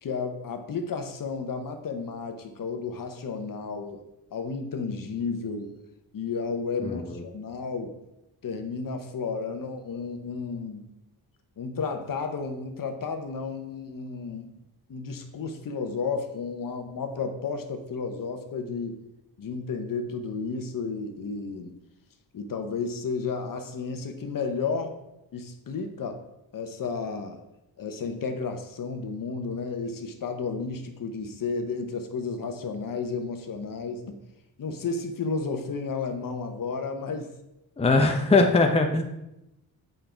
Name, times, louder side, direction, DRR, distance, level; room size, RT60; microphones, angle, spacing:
voice 1, 0.0-4.0 4.3-5.7 6.1-7.9 8.4-10.9 11.6-14.5 14.9-19.0 19.4-21.7 22.3-24.9 25.3-26.2 26.5-27.4 27.8-34.2 34.6-37.3 38.3-38.4, left 4 dB, 55° left, 6 dB, 1.0 m, -32 dB
voice 2, 37.8-39.0, left 3 dB, 15° left, 4 dB, 0.7 m, -20 dB
7.6 x 5.4 x 4.5 m, 0.89 s
cardioid pair, 105°, 40 cm